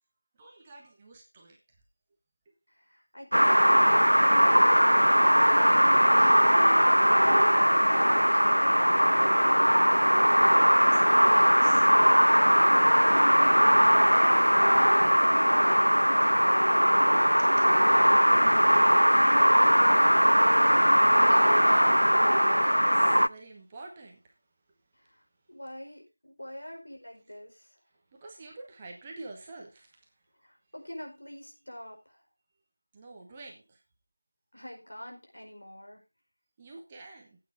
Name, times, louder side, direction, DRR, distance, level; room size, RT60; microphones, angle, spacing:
voice 1, 0.4-1.6 6.1-6.7 10.6-12.9 15.2-16.8 17.4-17.5 21.3-24.3 28.1-30.0 32.9-33.8 36.6-37.4, right 2 dB, 10° right, 0 dB, 1.1 m, -47 dB
voice 2, 2.7-4.1 7.5-10.2 24.9-27.8 30.3-32.2 34.5-36.0, equal, 65° left, 2 dB, 4.7 m, -46 dB
sound 1, 3.3-23.3, equal, 85° right, 0.5 m, -20 dB
14.0 x 8.7 x 3.5 m, 0.28 s
figure-of-eight pair, 170°, 0 cm